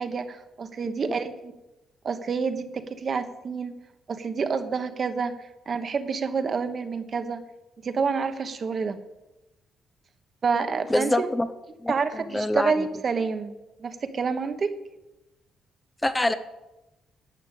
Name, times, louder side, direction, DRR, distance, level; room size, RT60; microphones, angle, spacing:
voice 1, 0.0-1.5 2.0-3.7 4.1-5.3 5.7-7.4 7.8-9.0 10.4-11.3 11.9-13.5 13.8-14.7, right 5 dB, 45° right, 9 dB, 1.2 m, -28 dB
voice 2, 10.9-11.5 11.8-12.9 16.0-16.3, left 1 dB, 15° left, 11 dB, 0.6 m, -25 dB
11.5 x 6.8 x 8.2 m, 1.0 s
cardioid pair, 90°, 0 cm